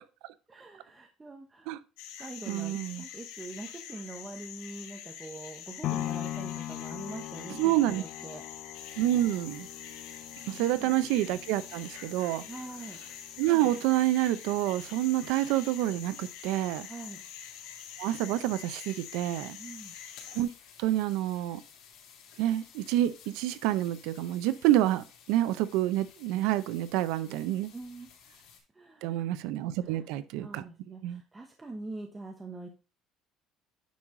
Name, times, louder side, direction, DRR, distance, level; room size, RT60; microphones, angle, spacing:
voice 1, 0.5-1.7 2.2-8.5 10.6-10.9 12.5-13.0 16.9-17.2 19.6-19.9 27.7-28.1 28.7-29.3 29.8-32.7, right 2 dB, 15° right, 1.0 m, -44 dB
sound 1, 2.0-20.4, left 9 dB, 85° left, 1.3 m, -46 dB
voice 2, 2.5-3.0 7.6-8.0 9.0-9.7 10.5-12.4 13.4-16.9 18.0-19.6 20.3-20.5 20.8-21.6 22.4-27.7 29.0-30.6 31.0-31.2, right 14 dB, 80° right, 0.6 m, -28 dB
sound 2, 5.8-13.9 14.4-14.5, left 13 dB, 50° left, 0.5 m, -40 dB
sound 3, 8.7-28.6, left 7 dB, 70° left, 2.9 m, -55 dB
9.4 x 4.7 x 3.7 m
cardioid pair, 160°, 0 cm